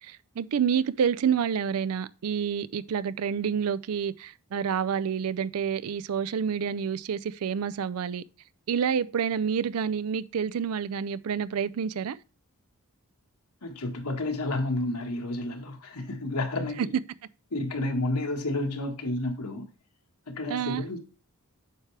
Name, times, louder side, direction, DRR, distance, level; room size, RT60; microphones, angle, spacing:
voice 1, 0.0-8.2 8.7-12.2 16.8-16.9 20.5-20.8, right 7 dB, 70° right, 0.4 m, -28 dB
voice 2, 13.6-16.8 17.5-19.7 20.3-21.0, left 2 dB, 80° left, 1.6 m, -30 dB
9.1 x 5.9 x 3.3 m
head